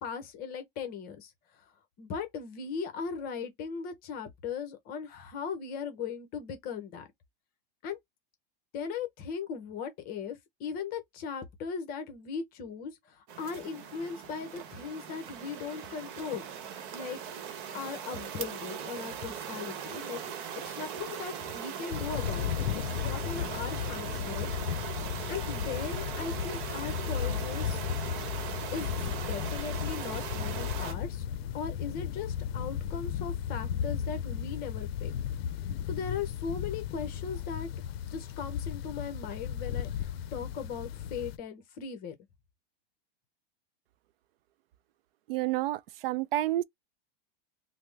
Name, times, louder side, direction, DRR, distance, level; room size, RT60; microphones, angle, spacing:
voice 1, 0.0-1.7 2.0-7.1 7.8-8.0 8.7-16.4 16.9-17.2 17.7-20.2 20.6-24.5 25.3-27.8 28.7-35.2 35.9-37.7 38.0-42.1, left 6 dB, 30° left, 0.8 m, -38 dB
sound 1, 13.3-30.9, right 8 dB, 55° right, 0.9 m, -39 dB
sound 2, 21.9-41.4, left 9 dB, 80° left, 0.5 m, -35 dB
voice 2, 45.3-46.6, right 15 dB, 75° right, 0.4 m, -29 dB
3.3 x 2.0 x 3.3 m
supercardioid pair, 150°, 30 cm